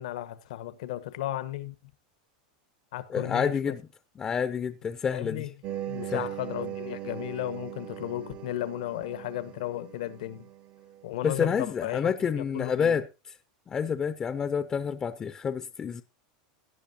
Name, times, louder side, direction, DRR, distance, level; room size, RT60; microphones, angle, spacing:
voice 1, 0.0-1.7 2.9-3.7 5.1-5.5 5.9-10.5 11.0-13.0, left 14 dB, 75° left, 1.1 m, -34 dB
voice 2, 3.1-3.8 4.2-5.4 6.1-6.2 11.2-13.1 13.7-16.0, left 6 dB, 20° left, 0.6 m, -28 dB
sound 1, 5.6-11.1, right 12 dB, 35° right, 0.6 m, -40 dB
17.0 x 11.0 x 2.8 m
supercardioid pair, 155°, 4 cm